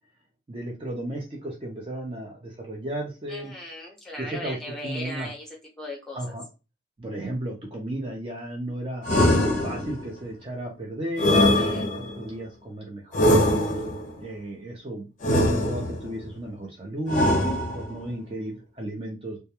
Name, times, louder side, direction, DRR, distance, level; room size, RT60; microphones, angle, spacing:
voice 1, 0.5-3.5 4.2-5.3 6.1-6.4 7.0-9.3 9.6-13.6 14.2-17.3 17.7-19.4, right 1 dB, 30° right, -1 dB, 0.4 m, -34 dB
voice 2, 3.3-6.3 11.4-11.9, left 1 dB, 5° left, -2 dB, 0.7 m, -38 dB
sound 1, 9.0-10.1 11.2-12.2 13.1-14.1 15.2-16.1 17.1-18.0, left 1 dB, 40° left, 0.5 m, -22 dB
2.2 x 2.1 x 2.8 m, 0.29 s
head